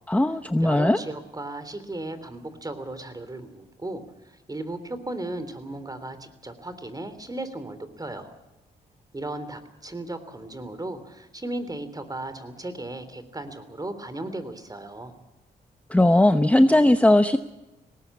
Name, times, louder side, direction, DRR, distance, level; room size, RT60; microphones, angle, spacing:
voice 1, 0.1-1.0 15.9-17.4, left 1 dB, 10° left, 9 dB, 0.9 m, -18 dB
voice 2, 0.6-8.3 9.1-15.1, right 2 dB, 20° right, 11 dB, 3.4 m, -36 dB
19.5 x 18.5 x 8.5 m, 1.0 s
cardioid pair, 65°, 17 cm